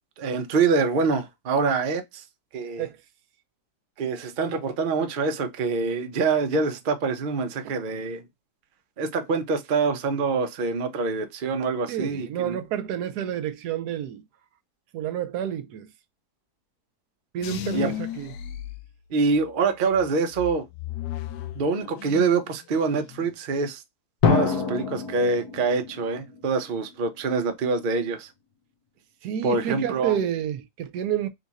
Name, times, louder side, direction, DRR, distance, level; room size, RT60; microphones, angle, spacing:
voice 1, 0.2-2.2 2.5-2.9 4.0-8.2 9.0-12.6 17.7-17.9 19.1-20.7 21.5-23.8 24.3-28.3 29.4-30.2, right 4 dB, 45° right, 0.7 m, -25 dB
voice 2, 11.9-14.2 14.9-15.9 17.3-18.3 29.2-31.3, right 10 dB, 80° right, 1.1 m, -29 dB
sound 1, 17.4-19.5 19.9-22.5 22.8-23.4, left 12 dB, 85° left, 1.2 m, -35 dB
Drum, 24.2-26.9, left 5 dB, 70° left, 1.4 m, -26 dB
3.9 x 2.5 x 4.0 m
omnidirectional pair, 1.7 m